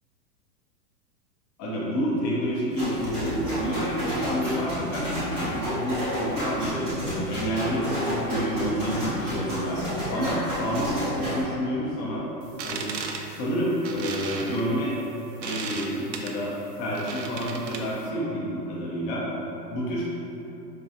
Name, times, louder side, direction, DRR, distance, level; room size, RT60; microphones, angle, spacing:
voice 1, 1.6-9.8 10.1-12.3 12.6-12.9 13.3-15.0 15.4-19.3 19.7-20.0, equal, 25° left, -5 dB, 0.7 m, -29 dB
sound 1, 2.7-11.4, equal, 10° right, 0.4 m, -31 dB
sound 2, 12.4-18.1, right 4 dB, 90° right, 0.6 m, -36 dB
5.2 x 2.3 x 2.7 m, 3.0 s
hypercardioid pair, 135°, 50 cm